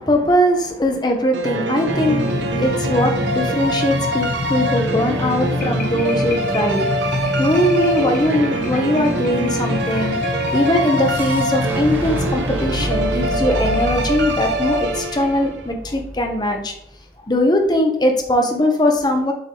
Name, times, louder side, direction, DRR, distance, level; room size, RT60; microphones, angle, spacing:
voice 1, 0.0-16.7 17.3-19.3, left 1 dB, 25° left, 3 dB, 1.0 m, -20 dB
sound 1, 1.3-15.6, right 1 dB, 80° right, 0.7 m, -24 dB
sound 2, 1.9-15.5, left 2 dB, 50° left, 1.1 m, -27 dB
Boom, 11.1-17.0, equal, 10° right, 0.8 m, -29 dB
7.3 x 5.4 x 3.1 m, 0.79 s
head